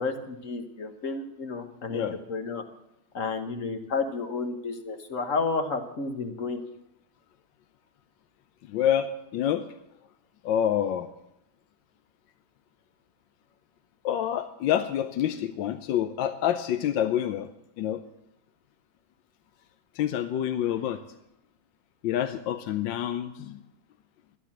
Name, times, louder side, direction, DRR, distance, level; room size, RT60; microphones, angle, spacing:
voice 1, 0.0-2.6 3.1-6.6, left 4 dB, 45° left, 7 dB, 1.4 m, -31 dB
voice 2, 8.7-9.7 10.4-11.1 14.0-17.5 17.8-18.0 19.9-21.0 22.0-23.6, left 10 dB, 80° left, 10 dB, 1.4 m, -27 dB
12.5 x 11.0 x 7.3 m, 0.86 s
omnidirectional pair, 2.1 m